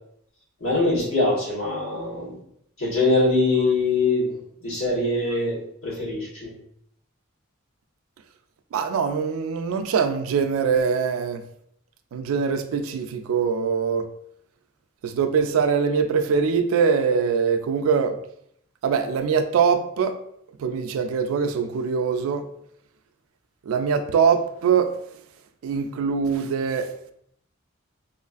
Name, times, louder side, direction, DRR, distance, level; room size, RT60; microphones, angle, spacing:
voice 1, 0.6-2.3 2.8-4.3 4.6-6.5, left 2 dB, 75° left, 1.4 m, -23 dB
voice 2, 8.7-11.4 12.1-14.1 15.0-18.2 18.8-20.2 20.6-22.5 23.7-25.0 25.6-26.9, right 6 dB, 75° right, 0.3 m, -23 dB
3.1 x 2.4 x 2.4 m
head